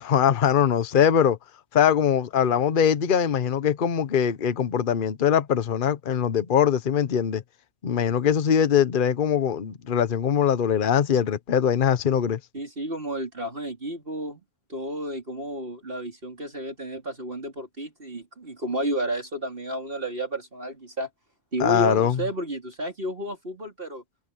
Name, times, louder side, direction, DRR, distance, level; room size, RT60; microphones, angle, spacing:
voice 1, 0.0-1.4 1.7-7.4 7.8-12.4 21.6-22.2, left 8 dB, 45° left, 1.0 m, -22 dB
voice 2, 12.5-14.4 14.7-21.1 21.5-24.0, right 1 dB, 45° right, 4.0 m, -31 dB
omnidirectional pair, 1.3 m